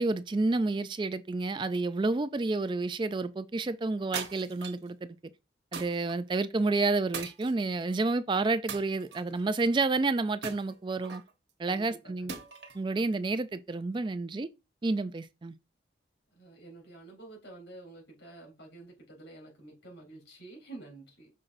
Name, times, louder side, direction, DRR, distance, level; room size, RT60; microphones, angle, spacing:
voice 1, 0.0-5.2 5.7-11.2 11.6-12.3 12.7-14.5 14.8-15.5, right 3 dB, 25° right, 0.3 m, -30 dB
sound 1, 4.1-4.9 5.7-6.2 7.1-8.0 8.7-9.4 10.4-11.3 12.3-12.8, right 6 dB, 75° right, 1.2 m, -40 dB
voice 2, 11.6-12.4 16.3-21.3, right 2 dB, 80° left, 3.8 m, -49 dB
6.3 x 5.8 x 2.6 m
head